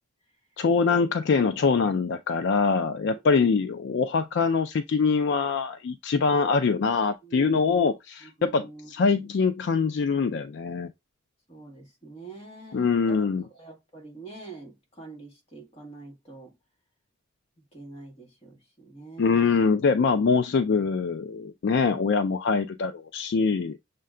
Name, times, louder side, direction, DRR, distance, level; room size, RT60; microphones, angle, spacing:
voice 1, 0.6-10.9 12.7-13.4 19.2-23.8, left 5 dB, 60° left, 0.3 m, -24 dB
voice 2, 7.2-7.9 8.2-9.3 11.5-16.5 17.7-19.6, right 3 dB, 30° left, 1.6 m, -45 dB
6.6 x 2.2 x 3.6 m
head